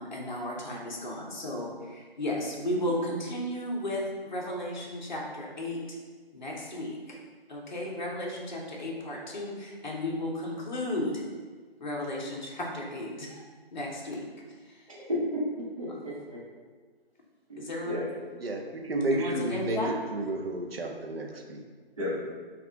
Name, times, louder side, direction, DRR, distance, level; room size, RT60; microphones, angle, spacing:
voice 1, 0.0-5.8 6.3-7.2 7.5-11.2 11.8-13.4 13.7-14.2 14.6-14.8 17.6-18.2 19.1-19.9, left 1 dB, 50° left, -3 dB, 0.8 m, -34 dB
voice 2, 14.9-15.4 15.8-16.4 17.5-18.0 22.0-22.3, left 1 dB, 35° right, -7 dB, 1.0 m, -33 dB
voice 3, 18.4-19.8 20.1-21.6, right 1 dB, 70° right, 2 dB, 0.6 m, -31 dB
3.5 x 2.4 x 3.3 m, 1.5 s
figure-of-eight pair, 160°, 31 cm